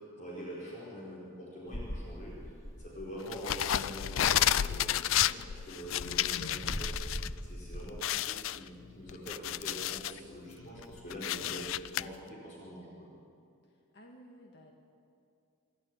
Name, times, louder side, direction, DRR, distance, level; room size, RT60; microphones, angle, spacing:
voice 1, 0.2-2.4 2.8-6.9 7.4-13.1, equal, 35° left, -6 dB, 4.7 m, -44 dB
sound 1, 1.7-3.4 3.6-3.7 4.0-4.5 5.0-8.0, equal, 15° left, 1.0 m, -42 dB
voice 2, 3.0-3.5 12.1-12.4 13.9-14.7, equal, 55° left, 0 dB, 1.9 m, -55 dB
sound 2, 3.3-7.3 7.6-7.7 8.0-10.2 10.6-12.0, left 11 dB, 75° left, 0.4 m, -31 dB
25.5 x 12.5 x 8.8 m, 2.5 s
head